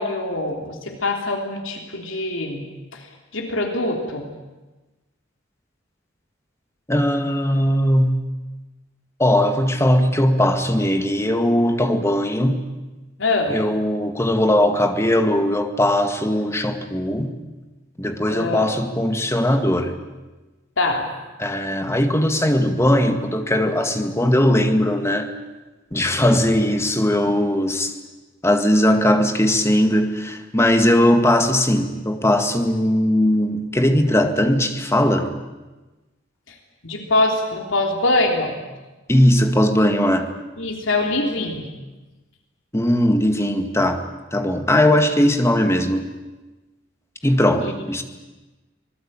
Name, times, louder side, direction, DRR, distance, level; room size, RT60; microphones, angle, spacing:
voice 1, 0.0-2.6 2.9-3.0 3.3-4.2 13.2-13.6 18.3-18.7 20.8-21.1 36.8-38.6 40.6-41.7 47.6-47.7, left 2 dB, 80° left, 3 dB, 3.4 m, -23 dB
voice 2, 6.9-8.2 9.2-12.6 13.5-17.3 18.0-19.9 21.4-25.3 25.9-28.0 28.4-35.3 39.1-40.3 42.7-44.0 44.3-46.1 47.2-48.0, left 1 dB, 15° left, 6 dB, 1.9 m, -19 dB
26.0 x 19.5 x 8.9 m, 1.1 s
head